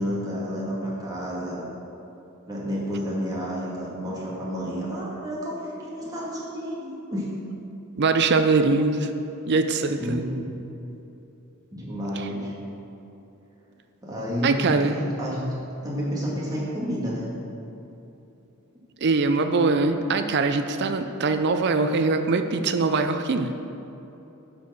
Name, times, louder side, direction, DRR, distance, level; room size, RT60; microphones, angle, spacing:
voice 1, 0.0-1.7 2.5-7.3 10.0-10.6 11.7-12.5 14.0-15.5 15.8-17.3, equal, 15° right, -7 dB, 2.1 m, -30 dB
voice 2, 8.0-9.1 9.5-10.2 14.4-15.0 19.0-23.5, right 3 dB, 50° right, 8 dB, 0.5 m, -22 dB
10.0 x 4.6 x 6.9 m, 3.0 s
head